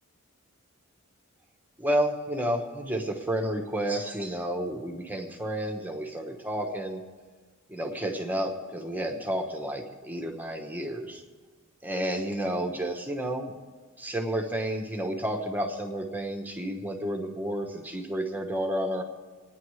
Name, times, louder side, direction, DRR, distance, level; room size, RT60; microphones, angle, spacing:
voice 1, 1.8-7.0 7.7-11.2 11.8-13.5 14.0-19.0, right 1 dB, 10° right, 2 dB, 1.0 m, -31 dB
28.0 x 9.7 x 3.2 m, 1.4 s
head